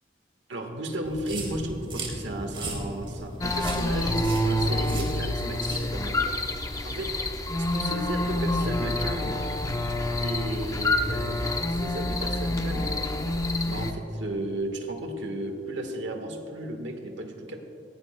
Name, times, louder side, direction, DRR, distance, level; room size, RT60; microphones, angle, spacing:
voice 1, 0.5-6.2 6.8-7.1 7.7-9.4 10.2-11.4 11.6-13.0 13.7-17.6, right 1 dB, 80° right, 4 dB, 1.4 m, -34 dB
sound 1, 1.0-6.2, right 1 dB, 30° right, 2.5 m, -37 dB
sound 2, 3.4-13.9, left 1 dB, 20° left, 0.6 m, -27 dB
20.0 x 16.0 x 2.2 m, 2.9 s
head